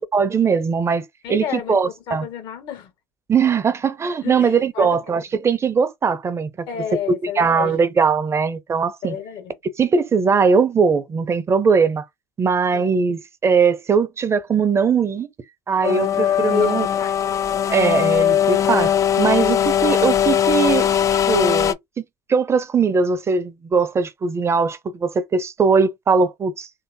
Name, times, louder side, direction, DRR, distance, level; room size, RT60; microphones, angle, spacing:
voice 1, 0.1-2.3 3.3-6.7 7.4-9.2 9.8-12.1 12.4-15.3 15.7-16.9 17.7-19.6 19.8-20.9 21.3-22.0 22.3-26.8, right 5 dB, 30° right, 0.7 m, -20 dB
voice 2, 1.2-2.9 4.2-5.0 6.7-7.8 9.0-9.5 12.7-12.9 16.5-17.4 19.3-20.2, left 7 dB, 60° left, 1.4 m, -30 dB
sound 1, 15.8-21.7, left 9 dB, 35° left, 0.5 m, -19 dB
3.2 x 2.8 x 2.6 m
hypercardioid pair, 70°, 9 cm